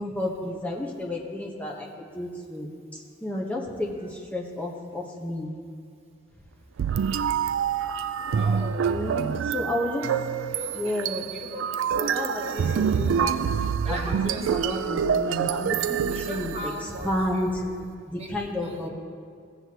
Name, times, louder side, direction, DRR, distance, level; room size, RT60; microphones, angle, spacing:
voice 1, 0.0-5.5 8.9-10.1 10.7-11.2 11.9-13.4 13.9-16.7 17.0-17.6 18.1-18.9, left 1 dB, 5° left, -1 dB, 1.1 m, -31 dB
sound 1, 6.8-17.1, right 7 dB, 65° right, 0.3 m, -26 dB
voice 2, 8.3-9.2 10.5-15.3 16.1-17.7 18.2-18.9, right 1 dB, 30° right, -1 dB, 1.3 m, -40 dB
16.5 x 7.9 x 3.0 m, 2.3 s
head